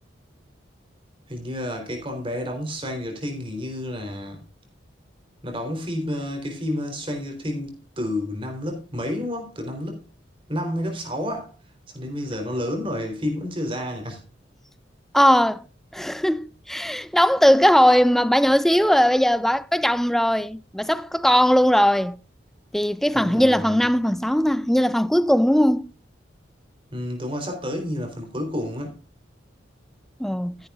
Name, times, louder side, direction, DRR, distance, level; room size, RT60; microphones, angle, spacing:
voice 1, 1.3-4.4 5.4-10.0 10.5-11.5 11.9-14.2 23.1-23.8 26.9-29.0, left 1 dB, 25° right, 3.6 m, -30 dB
voice 2, 15.1-15.6 15.9-22.2 22.7-25.9 30.2-30.6, equal, ahead, 0.4 m, -19 dB
14.0 x 10.5 x 2.4 m
head